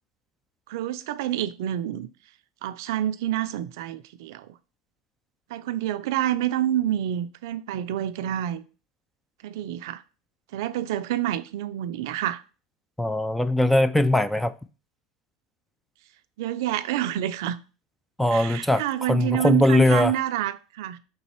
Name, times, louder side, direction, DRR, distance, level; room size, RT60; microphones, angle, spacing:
voice 1, 0.7-2.1 2.6-4.5 5.5-8.6 9.4-10.0 10.5-12.4 16.4-17.6 18.3-21.0, right 12 dB, 70° right, 0.4 m, -28 dB
voice 2, 13.0-14.5 18.2-18.8 19.1-20.1, left 1 dB, ahead, 0.5 m, -20 dB
5.4 x 4.0 x 4.3 m
hypercardioid pair, 95°, 2 cm